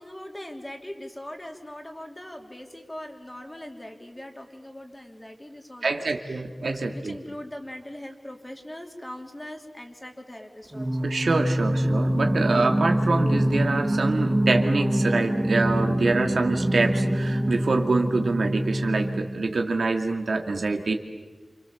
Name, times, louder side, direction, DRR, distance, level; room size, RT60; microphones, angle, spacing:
voice 1, 0.0-11.2, left 1 dB, 20° left, 3 dB, 3.2 m, -41 dB
voice 2, 5.8-7.2 11.0-20.9, right 3 dB, 85° right, 4 dB, 2.3 m, -25 dB
Singing, 10.7-19.6, right 1 dB, 30° right, 1.7 m, -25 dB
28.5 x 26.5 x 7.3 m, 1.3 s
wide cardioid pair, 75°, 0 cm